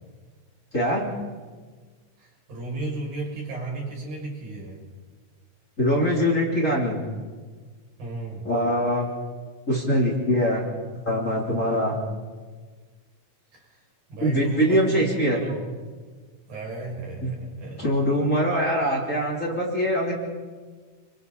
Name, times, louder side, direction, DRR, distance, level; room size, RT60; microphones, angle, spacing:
voice 1, 0.7-1.1 5.8-7.0 8.4-9.1 9.7-10.7 11.1-12.0 14.2-15.4 17.2-17.3 17.8-20.1, equal, 20° left, -3 dB, 3.6 m, -23 dB
voice 2, 2.2-4.9 8.0-8.4 13.5-13.6 14.1-15.7 16.5-17.9, right 3 dB, 80° right, -3 dB, 8.3 m, -34 dB
29.0 x 25.5 x 4.2 m, 1.4 s
omnidirectional pair, 4.1 m